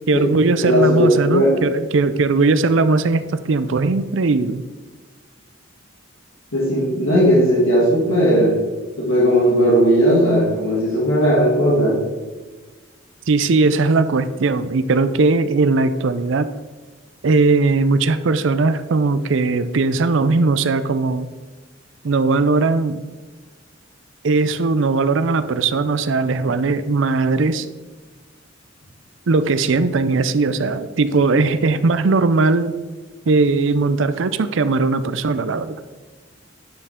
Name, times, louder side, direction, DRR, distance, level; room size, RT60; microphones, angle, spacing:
voice 1, 0.1-4.6 13.3-16.5 17.2-21.3 22.0-23.0 24.2-27.7 29.3-32.7 33.3-35.8, right 3 dB, 65° right, 12 dB, 0.5 m, -18 dB
voice 2, 0.6-1.5 6.5-8.5 9.0-12.0, equal, 80° left, -5 dB, 2.5 m, -16 dB
9.5 x 6.8 x 3.7 m, 1.3 s
head